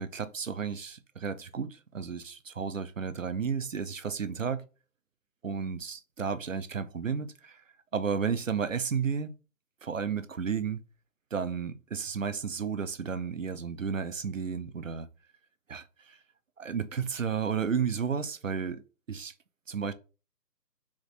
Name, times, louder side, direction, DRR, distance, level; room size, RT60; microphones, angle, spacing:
voice 1, 0.0-4.6 5.4-7.5 7.9-9.3 9.8-10.8 11.3-15.1 15.7-15.8 16.6-18.8 19.1-19.3 19.7-19.9, right 6 dB, 55° right, 0.5 m, -32 dB
3.5 x 3.1 x 3.9 m
hypercardioid pair, 170°, 48 cm